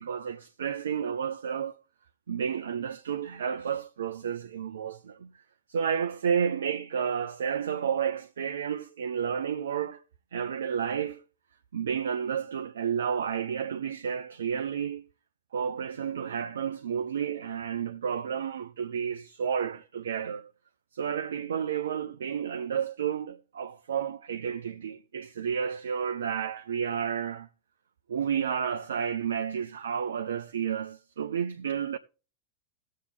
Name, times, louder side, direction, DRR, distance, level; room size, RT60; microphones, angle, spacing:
voice 1, 0.0-1.8 2.3-5.3 5.7-10.0 10.3-11.2 11.7-15.1 15.5-20.5 20.9-27.5 28.1-32.0, right 7 dB, 65° right, 0.7 m, -31 dB
17.0 x 7.6 x 3.4 m
figure-of-eight pair, 90°, 0 cm